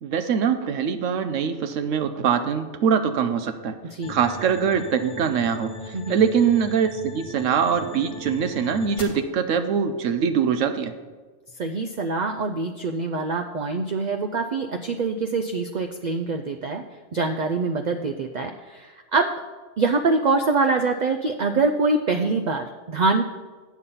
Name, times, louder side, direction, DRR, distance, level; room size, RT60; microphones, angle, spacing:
voice 1, 0.0-3.7 4.1-10.9, right 7 dB, 85° right, 9 dB, 1.1 m, -23 dB
sound 1, 4.0-9.0, left 2 dB, 45° left, 1.6 m, -40 dB
voice 2, 11.6-16.8 17.1-19.3 19.8-23.2, right 3 dB, 55° right, 5 dB, 0.5 m, -24 dB
8.3 x 6.8 x 5.5 m, 1.3 s
omnidirectional pair, 1.3 m